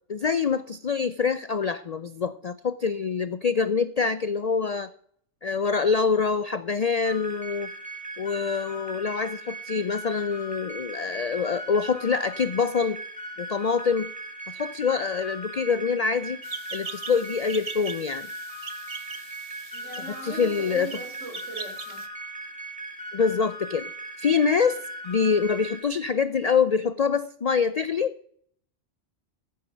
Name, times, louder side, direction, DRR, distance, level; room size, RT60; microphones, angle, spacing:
voice 1, 0.1-4.9 5.4-7.7 8.2-13.0 13.4-14.1 14.5-16.4 16.7-18.3 20.1-20.9 23.1-23.9 24.2-28.1, left 5 dB, 65° left, 13 dB, 0.3 m, -25 dB
sound 1, 7.0-25.8, right 1 dB, 5° right, 2.2 m, -38 dB
sound 2, 16.4-22.1, right 5 dB, 35° right, 0.7 m, -41 dB
voice 2, 19.7-22.1 24.6-24.7, right 2 dB, 70° right, 3 dB, 3.6 m, -40 dB
14.0 x 7.2 x 6.2 m, 0.63 s
omnidirectional pair, 1.3 m